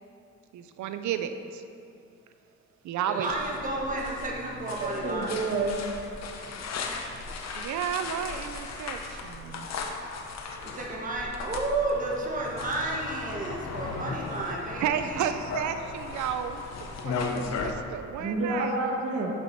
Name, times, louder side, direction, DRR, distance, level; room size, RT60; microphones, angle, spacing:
voice 1, 0.5-1.6 2.8-3.3 7.5-9.9 14.8-18.9, right 9 dB, 70° right, 9 dB, 0.6 m, -32 dB
voice 2, 3.1-5.4 10.6-15.3, right 2 dB, 25° right, -3 dB, 1.4 m, -32 dB
sound 1, 3.3-17.7, left 4 dB, 60° left, 1.0 m, -37 dB
voice 3, 4.8-5.8 18.2-19.3, right 2 dB, 45° right, -2 dB, 1.2 m, -29 dB
7.6 x 7.0 x 4.5 m, 2.5 s
cardioid pair, 90°, 30 cm